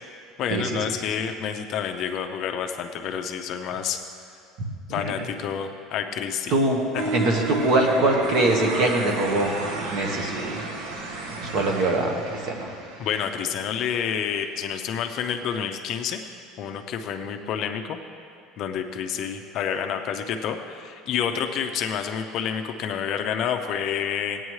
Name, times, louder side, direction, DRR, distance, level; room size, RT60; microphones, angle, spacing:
voice 1, 0.4-4.0 4.9-6.6 6.9-7.0 13.0-16.2 16.6-18.0 18.6-24.4, left 8 dB, 40° left, 6 dB, 0.5 m, -29 dB
voice 2, 6.5-6.8 7.1-9.5 9.9-10.6 11.4-12.7, right 2 dB, 45° right, 2 dB, 1.3 m, -23 dB
sound 1, 7.0-13.9, right 2 dB, 65° right, 1.2 m, -32 dB
17.0 x 9.0 x 3.2 m, 2.4 s
cardioid pair, 180°, 0 cm